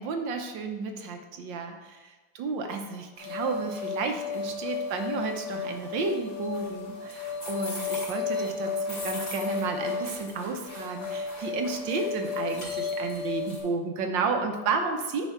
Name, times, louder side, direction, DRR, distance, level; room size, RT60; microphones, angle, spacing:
voice 1, 0.0-15.3, right 4 dB, 75° right, 5 dB, 1.5 m, -32 dB
sound 1, 3.2-13.6, left 4 dB, 55° left, 3.4 m, -33 dB
10.0 x 4.5 x 4.5 m, 1.3 s
omnidirectional pair, 2.1 m